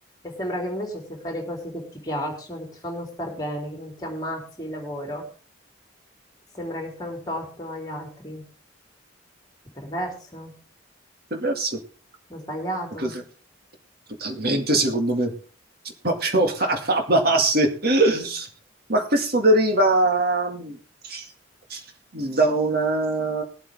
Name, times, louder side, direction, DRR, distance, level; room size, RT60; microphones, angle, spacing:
voice 1, 0.2-5.3 6.5-8.4 9.8-10.5 12.3-13.1, equal, 20° left, 1 dB, 3.7 m, -32 dB
voice 2, 11.3-11.8 13.0-13.2 14.2-15.3 16.0-18.5 18.9-20.8 21.0-21.3 21.7-21.8 22.1-23.4, right 2 dB, 50° right, 3 dB, 2.1 m, -22 dB
20.5 x 8.0 x 3.6 m, 0.38 s
head